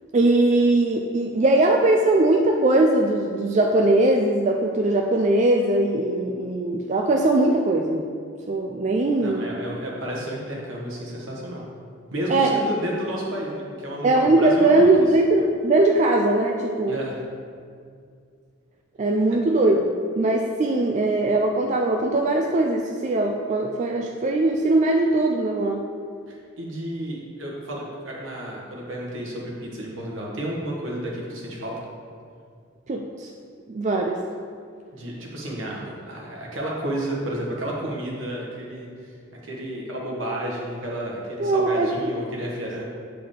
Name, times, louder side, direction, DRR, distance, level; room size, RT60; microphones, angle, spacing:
voice 1, 0.1-8.0 8.5-9.4 12.3-12.5 14.0-17.0 19.0-25.9 32.9-33.3 33.7-34.2 41.4-41.9, right 2 dB, 35° right, 1 dB, 0.3 m, -20 dB
voice 2, 9.2-11.6 12.1-14.9 16.9-17.2 26.3-31.7 34.9-42.8, right 1 dB, 75° right, -3 dB, 1.4 m, -31 dB
8.1 x 4.7 x 3.7 m, 2.2 s
head